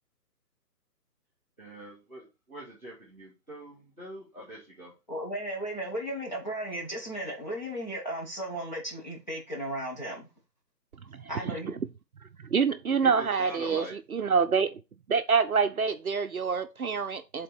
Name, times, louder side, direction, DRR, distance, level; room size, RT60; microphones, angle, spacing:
voice 1, 1.6-4.9 13.0-13.9, right 1 dB, 5° left, 1.4 m, -43 dB
voice 2, 5.1-10.3 11.3-11.7, right 1 dB, 25° left, 1.2 m, -35 dB
voice 3, 11.1-11.5 12.5-14.8 15.1-17.4, right 5 dB, 60° right, 0.6 m, -26 dB
7.7 x 3.8 x 4.5 m
hypercardioid pair, 175°, 50 cm